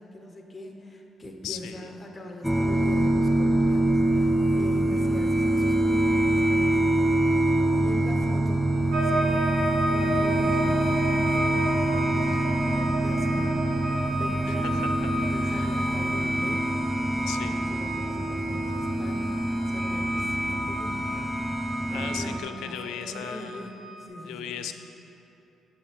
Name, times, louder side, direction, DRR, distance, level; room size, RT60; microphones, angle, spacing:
voice 1, 0.0-14.9 15.2-16.7 17.1-21.2 21.5-23.7 24.0-24.6, left 1 dB, 20° left, 2 dB, 0.9 m, -42 dB
voice 2, 1.4-1.9 14.5-14.9 15.4-15.7 17.3-17.5 21.9-23.7 24.3-24.7, left 9 dB, 90° left, 8 dB, 0.4 m, -37 dB
sound 1, 2.4-22.4, right 1 dB, ahead, 0.3 m, -25 dB
sound 2, 8.9-24.1, right 1 dB, 60° right, 1.6 m, -33 dB
7.0 x 5.6 x 5.1 m, 3.0 s
cardioid pair, 90°, 0 cm